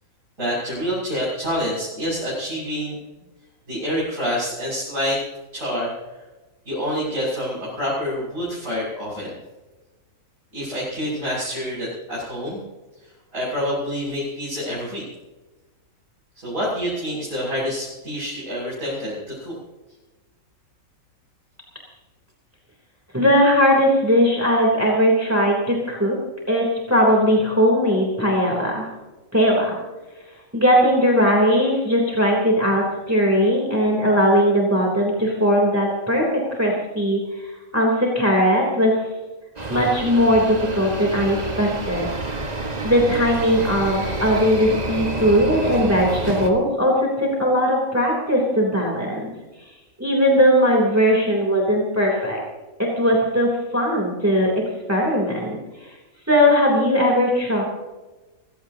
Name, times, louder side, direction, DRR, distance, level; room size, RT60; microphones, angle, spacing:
voice 1, 0.4-2.9 3.7-5.2 5.5-5.9 6.7-9.3 10.5-12.6 13.0-15.0 16.4-19.6, equal, 70° right, -7 dB, 7.8 m, -27 dB
voice 2, 23.1-26.2 26.5-28.9 29.3-29.8 30.5-37.5 37.7-39.0 39.7-42.1 42.8-49.3 50.0-52.4 52.8-55.6 56.3-57.6, equal, 10° right, -2 dB, 3.4 m, -19 dB
sound 1, 39.6-46.5, right 2 dB, 30° right, 1.7 m, -28 dB
25.0 x 16.5 x 2.9 m, 1.2 s
omnidirectional pair, 1.4 m